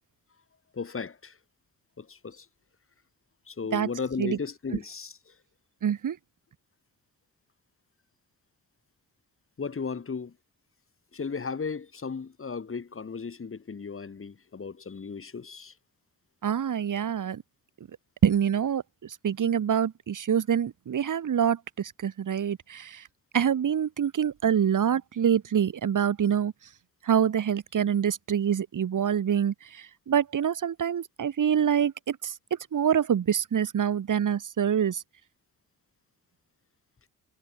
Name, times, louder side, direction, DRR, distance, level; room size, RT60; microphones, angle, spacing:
voice 1, 0.7-1.4 2.0-2.5 3.5-5.3 9.6-10.3 11.1-15.7, left 5 dB, 40° left, 3.8 m, -35 dB
voice 2, 5.8-6.2 16.4-17.4 18.2-23.0 23.3-26.5 27.0-32.3 32.7-35.0, right 8 dB, 65° right, 5.5 m, -26 dB
cardioid pair, 75°, 34 cm